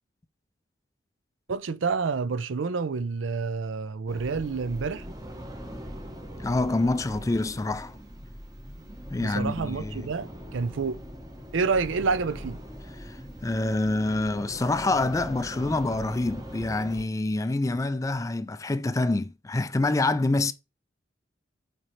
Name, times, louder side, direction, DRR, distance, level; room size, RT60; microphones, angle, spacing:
voice 1, 1.5-5.1 9.2-11.0 11.5-12.6, right 4 dB, 90° right, 0.5 m, -28 dB
sound 1, 4.1-17.0, equal, 20° right, 1.1 m, -41 dB
voice 2, 6.4-8.0 9.1-10.1 13.0-20.5, left 2 dB, 15° left, 0.3 m, -26 dB
7.5 x 4.3 x 3.2 m
head